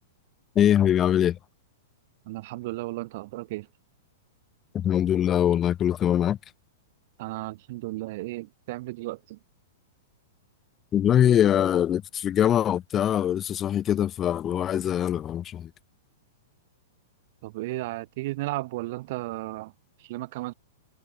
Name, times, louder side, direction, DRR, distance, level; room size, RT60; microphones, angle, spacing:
voice 1, 0.5-1.4 4.7-6.4 10.9-15.7, left 10 dB, 25° left, 1.2 m, -23 dB
voice 2, 2.3-3.7 7.2-9.4 17.4-19.7 20.0-20.5, right 20 dB, 45° right, 1.1 m, -34 dB
figure-of-eight pair, 105°, 0 cm